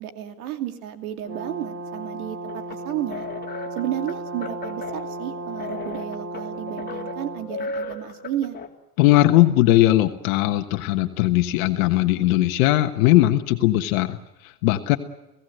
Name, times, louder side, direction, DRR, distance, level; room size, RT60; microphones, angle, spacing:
voice 1, 0.0-3.3 3.7-8.6, right 12 dB, 75° right, 7 dB, 2.7 m, -32 dB
Brass instrument, 1.2-7.5, right 2 dB, 25° right, 6.9 m, -35 dB
sound 1, 2.5-8.7, left 3 dB, 20° left, 3.2 m, -36 dB
voice 2, 9.0-15.0, left 15 dB, 70° left, 7 dB, 1.4 m, -19 dB
28.5 x 16.5 x 7.9 m, 0.99 s
supercardioid pair, 120°, 43 cm